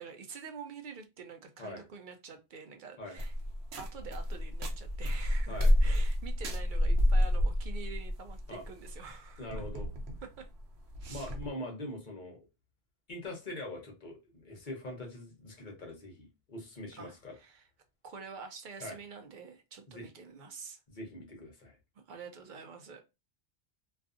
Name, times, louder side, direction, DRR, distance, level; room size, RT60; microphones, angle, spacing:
voice 1, 0.0-3.3 3.8-9.6 10.2-10.5 11.0-11.3 17.0-17.7 18.0-20.8 22.0-23.0, right 5 dB, 60° right, 0.6 m, -47 dB
Floor walking, 3.2-11.5, left 1 dB, 90° right, 0.9 m, -30 dB
voice 2, 9.4-9.9 11.1-12.5 13.1-17.4 18.8-19.0 19.9-20.1 20.9-21.8, left 1 dB, 50° left, 0.9 m, -43 dB
2.5 x 2.3 x 2.4 m
omnidirectional pair, 1.0 m